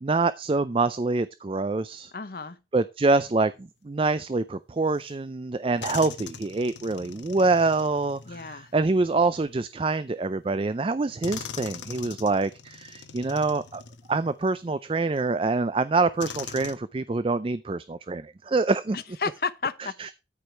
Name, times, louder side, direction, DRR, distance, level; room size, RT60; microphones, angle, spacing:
voice 1, 0.0-2.1 2.7-13.8 14.1-19.0 20.0-20.1, right 3 dB, 30° right, 0.4 m, -25 dB
voice 2, 2.1-2.6 8.2-8.7 18.9-19.9, left 5 dB, 55° left, 0.8 m, -32 dB
sound 1, 5.1-5.2 5.8-9.4 10.4-10.5 11.2-14.6 15.2-15.3 16.2-16.7, left 6 dB, 75° left, 1.2 m, -41 dB
13.0 x 5.0 x 4.5 m
head